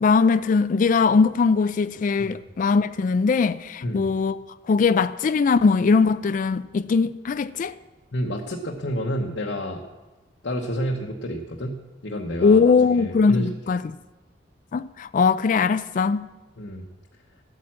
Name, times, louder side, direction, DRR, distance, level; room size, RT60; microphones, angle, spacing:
voice 1, 0.0-4.4 4.7-7.7 12.4-13.8 14.7-16.3, left 5 dB, 45° left, 0.3 m, -20 dB
voice 2, 8.1-9.8 10.4-13.5 16.6-16.9, equal, 75° left, 1.0 m, -29 dB
12.0 x 9.0 x 7.4 m
head